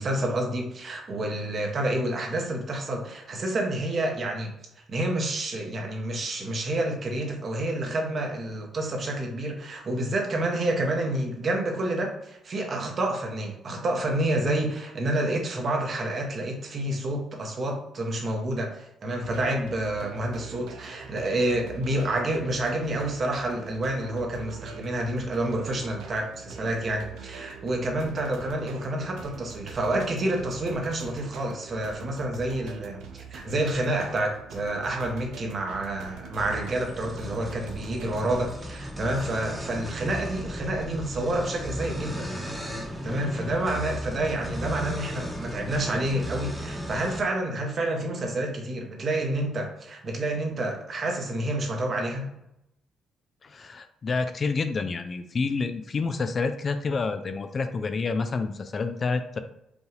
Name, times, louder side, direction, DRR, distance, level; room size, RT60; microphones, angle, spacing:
voice 1, 0.0-4.5 4.9-42.3 43.0-52.3, right 1 dB, 45° right, 2 dB, 1.0 m, -29 dB
sound 1, 19.2-38.6, right 6 dB, 90° right, 0.5 m, -44 dB
sound 2, 36.4-47.2, equal, 10° right, 1.0 m, -35 dB
voice 2, 53.4-59.4, left 4 dB, 40° left, 9 dB, 0.4 m, -28 dB
5.1 x 2.3 x 3.3 m, 0.83 s
cardioid pair, 90°, 0 cm